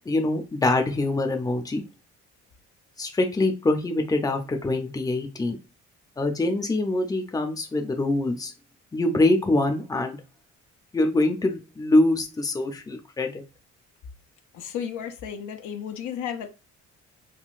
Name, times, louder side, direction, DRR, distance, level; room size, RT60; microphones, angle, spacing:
voice 1, 0.1-1.8 3.0-5.6 6.2-8.5 8.9-10.2 10.9-13.4, left 2 dB, 10° left, 0.6 m, -24 dB
voice 2, 14.5-16.5, left 8 dB, 80° left, 0.6 m, -33 dB
3.8 x 2.2 x 2.4 m
cardioid pair, 90°, 30 cm